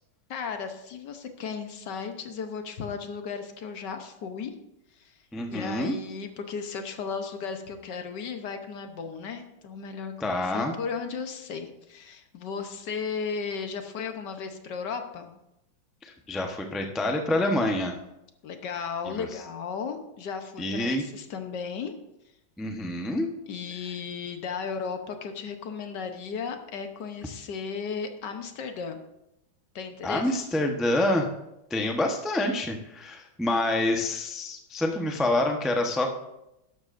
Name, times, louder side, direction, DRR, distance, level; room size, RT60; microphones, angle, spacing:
voice 1, 0.3-4.5 4.9-5.1 5.5-15.4 18.4-21.9 23.5-29.0 29.7-30.3, left 5 dB, 65° left, 6 dB, 1.5 m, -35 dB
voice 2, 5.3-6.0 10.2-10.7 16.0-18.0 19.2-19.3 20.6-21.0 22.6-23.3 30.0-31.3 31.7-36.1, left 1 dB, ahead, 2 dB, 0.4 m, -27 dB
12.5 x 11.5 x 2.6 m, 0.86 s
omnidirectional pair, 2.1 m